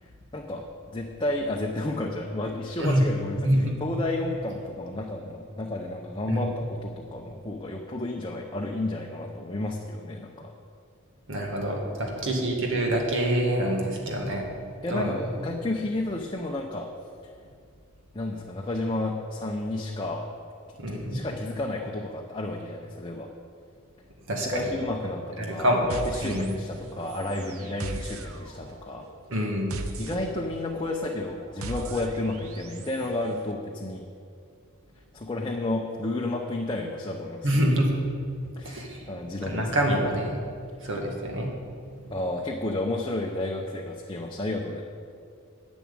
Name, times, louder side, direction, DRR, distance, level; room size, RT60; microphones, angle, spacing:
voice 1, 0.0-10.5 12.0-12.3 14.8-16.9 18.1-20.3 21.1-23.3 24.4-29.1 30.0-34.1 35.1-37.6 38.6-39.8 42.1-44.8, left 2 dB, 25° left, 0 dB, 0.7 m, -32 dB
voice 2, 3.4-3.7 6.3-6.4 11.3-14.5 14.9-15.1 20.8-21.2 24.3-24.6 25.4-25.9 26.2-26.5 29.3-29.7 37.4-37.9 38.6-39.0 39.5-40.4 40.8-41.5, equal, 60° right, 0 dB, 1.9 m, -26 dB
sound 1, 25.9-33.1, right 2 dB, 75° right, 0.8 m, -39 dB
10.5 x 6.2 x 8.8 m, 2.3 s
head